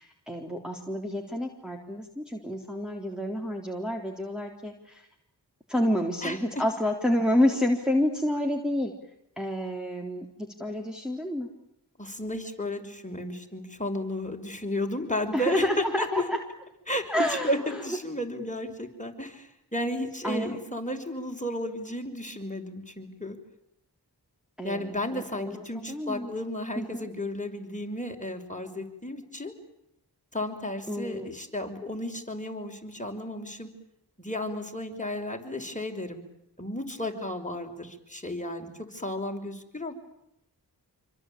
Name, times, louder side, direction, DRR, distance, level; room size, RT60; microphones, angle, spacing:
voice 1, 0.0-5.1 5.7-8.9 9.4-10.3 10.6-11.5 15.3-16.4 17.1-17.8 20.2-20.6 24.6-26.3 26.8-27.1 30.9-31.3, left 1 dB, ahead, 0 dB, 3.7 m, -29 dB
voice 2, 12.0-16.2 16.9-23.4 24.6-29.5 30.3-33.7 34.2-36.2 36.6-39.9, left 1 dB, 20° left, 3 dB, 5.8 m, -33 dB
27.5 x 24.5 x 8.8 m, 0.79 s
wide cardioid pair, 50°, 41 cm